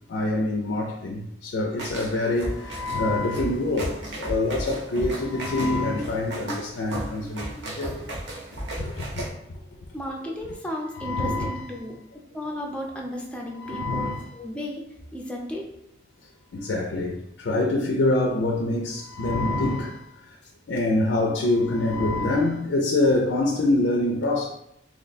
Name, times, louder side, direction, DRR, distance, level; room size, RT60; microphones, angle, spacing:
voice 1, 0.1-8.1 8.8-9.6 10.9-11.8 13.5-14.3 16.5-20.3 20.7-24.5, left 2 dB, 85° left, 0.4 m, -25 dB
sound 1, 1.8-9.3, right 1 dB, 85° right, 0.8 m, -35 dB
voice 2, 9.9-11.9 12.3-14.8 15.1-15.7, equal, 5° left, 0.5 m, -34 dB
3.0 x 2.1 x 4.0 m
head